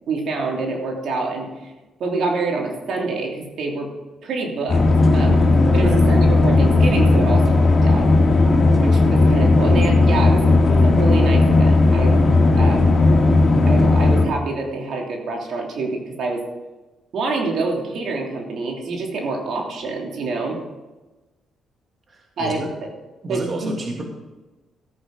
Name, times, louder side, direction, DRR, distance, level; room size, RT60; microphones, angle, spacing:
voice 1, 0.1-1.7 2.0-3.9 4.2-4.8 5.1-5.4 5.7-8.4 8.8-12.2 12.6-13.0 13.7-16.4 17.1-20.6 22.4-22.7 23.3-23.8, right 3 dB, 65° right, 0 dB, 3.1 m, -26 dB
sound 1, 4.7-14.2, left 2 dB, 40° left, 3.2 m, -15 dB
voice 2, 22.1-22.7 23.2-24.0, right 2 dB, 40° right, 0 dB, 2.6 m, -30 dB
15.5 x 8.8 x 5.3 m, 1.1 s
cardioid pair, 90°, 0 cm